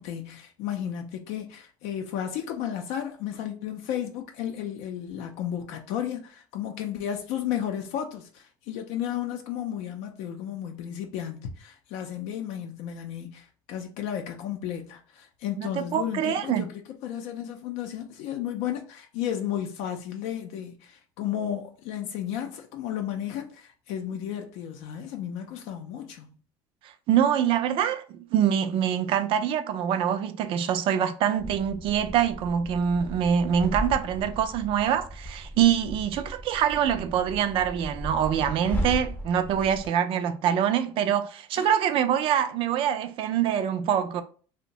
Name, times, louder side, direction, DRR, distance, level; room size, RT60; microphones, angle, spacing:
voice 1, 0.0-26.4 41.6-41.7, left 10 dB, 80° left, 0.4 m, -33 dB
voice 2, 15.6-16.7 27.1-44.2, right 9 dB, 55° right, 0.3 m, -25 dB
sound 1, 31.4-39.9, equal, 15° left, 0.5 m, -36 dB
2.6 x 2.1 x 2.8 m
supercardioid pair, 110°, 11 cm